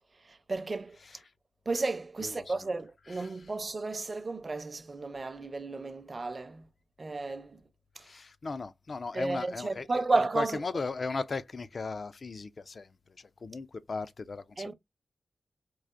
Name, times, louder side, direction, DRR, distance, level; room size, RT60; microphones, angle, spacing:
voice 1, 0.2-1.0 1.7-6.7 7.0-7.6 8.0-8.1 9.1-10.6 14.6-14.7, right 3 dB, 35° right, 0.6 m, -33 dB
voice 2, 8.0-10.0 10.4-14.7, left 4 dB, 45° left, 0.4 m, -37 dB
4.6 x 2.5 x 2.4 m
wide cardioid pair, 115°, 0 cm